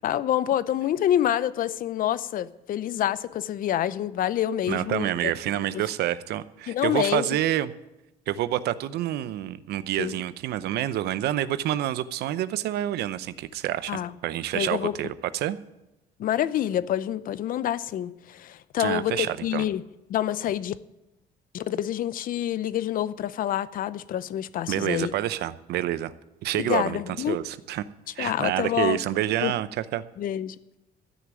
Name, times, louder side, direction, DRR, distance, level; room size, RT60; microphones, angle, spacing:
voice 1, 0.0-5.3 6.7-7.3 10.0-10.2 13.9-14.1 14.5-15.0 16.2-19.8 20.1-20.7 21.5-25.1 26.5-27.4 28.2-29.0 29.4-29.5 30.2-30.6, left 11 dB, 55° left, 0.6 m, -27 dB
voice 2, 4.7-7.7 8.3-15.6 18.8-19.7 24.7-26.1 26.4-27.9 28.1-30.0, right 13 dB, 75° right, 0.7 m, -28 dB
13.5 x 6.2 x 9.1 m
cardioid pair, 110°, 17 cm